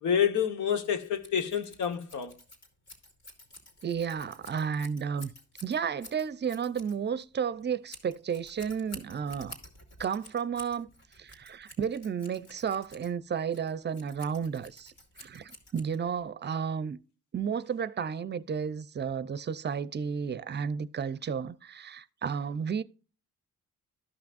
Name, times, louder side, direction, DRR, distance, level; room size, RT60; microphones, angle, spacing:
voice 1, 0.0-2.3, left 8 dB, 75° left, 1.3 m, -28 dB
Scissors, 0.7-16.3, left 1 dB, 60° left, 3.0 m, -52 dB
voice 2, 3.8-5.3 5.6-9.6 10.0-10.9 11.2-14.9 15.2-17.0 17.3-22.8, right 7 dB, 35° right, 0.6 m, -32 dB
13.5 x 5.9 x 2.5 m
cardioid pair, 90°, 30 cm